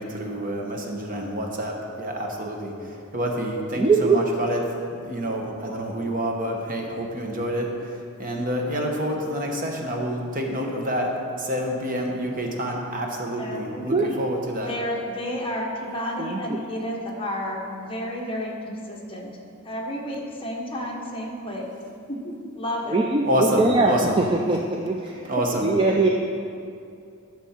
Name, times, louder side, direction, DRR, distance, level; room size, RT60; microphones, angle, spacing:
voice 1, 0.0-4.6 5.0-14.7 23.2-24.2 25.2-25.7, equal, 40° right, 1 dB, 1.1 m, -28 dB
voice 2, 3.8-4.2 13.9-14.1 16.2-16.4 22.9-25.1 25.6-26.1, right 3 dB, 25° right, 1 dB, 0.4 m, -21 dB
voice 3, 13.4-14.2 14.6-19.3 19.6-21.7 22.1-23.0, equal, 25° left, -2 dB, 1.3 m, -31 dB
13.0 x 6.1 x 4.4 m, 2.5 s
head